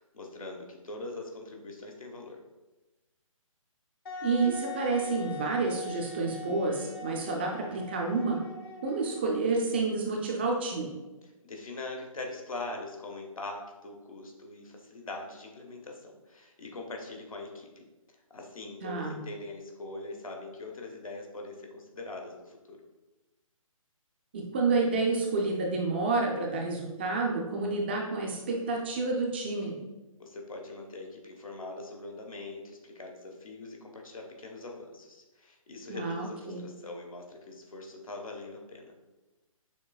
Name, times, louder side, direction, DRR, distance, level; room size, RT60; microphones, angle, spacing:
voice 1, 0.0-2.4 11.2-17.8 18.3-22.8 30.2-38.9, left 2 dB, 75° left, 1 dB, 1.1 m, -42 dB
Wind instrument woodwind instrument, 4.1-9.6, left 3 dB, 40° left, 0.7 m, -42 dB
voice 2, 4.2-8.4 8.8-10.9 18.8-19.2 24.3-29.7 35.9-36.6, right 3 dB, 20° right, 0 dB, 0.3 m, -29 dB
6.3 x 3.2 x 2.3 m, 1.1 s
figure-of-eight pair, 140°, 18 cm